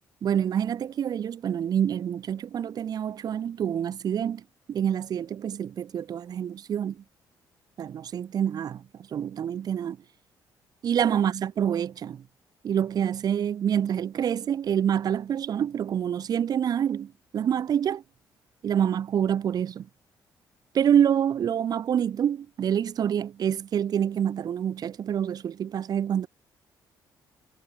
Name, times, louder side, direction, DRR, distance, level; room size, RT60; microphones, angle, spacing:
voice 1, 0.2-7.0 7.8-8.8 9.1-10.0 10.8-12.2 12.6-18.0 18.6-19.9 20.7-26.3, right 9 dB, 55° right, 3.6 m, -27 dB
cardioid pair, 105°, 8 cm